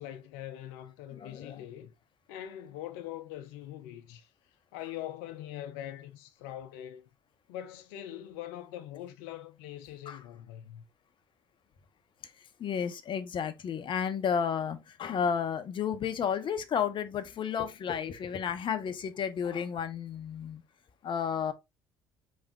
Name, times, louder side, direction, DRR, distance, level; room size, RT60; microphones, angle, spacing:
voice 1, 0.0-1.9 2.3-4.3 4.7-7.0 7.5-10.8, left 12 dB, 75° left, 0.7 m, -42 dB
voice 2, 1.2-1.6 10.1-10.2 12.6-20.6 21.0-21.5, left 7 dB, 45° left, 0.8 m, -32 dB
4.2 x 3.5 x 3.4 m
hypercardioid pair, 65°, 11 cm